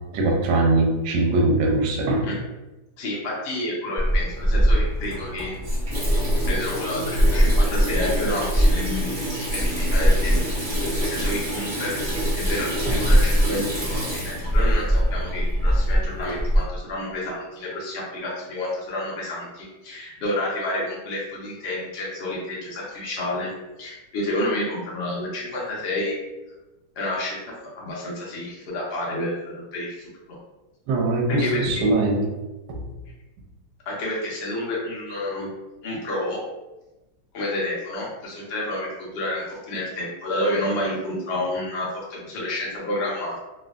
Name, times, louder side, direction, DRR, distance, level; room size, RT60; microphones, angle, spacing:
voice 1, 0.1-2.3 12.9-13.0 30.9-32.3 32.7-32.8, right 2 dB, 70° right, 0 dB, 1.0 m, -21 dB
voice 2, 3.0-5.5 6.5-9.2 9.5-10.4 10.7-11.9 12.3-23.5 23.8-26.2 27.0-30.4 31.3-31.8 33.9-35.5 35.8-36.4 37.3-43.4, left 1 dB, 75° left, -4 dB, 0.6 m, -29 dB
Water tap faucet / Sink (filling or washing), 4.0-16.6, equal, 50° right, 0.4 m, -22 dB
3.4 x 2.1 x 2.3 m, 1.1 s
omnidirectional pair, 2.2 m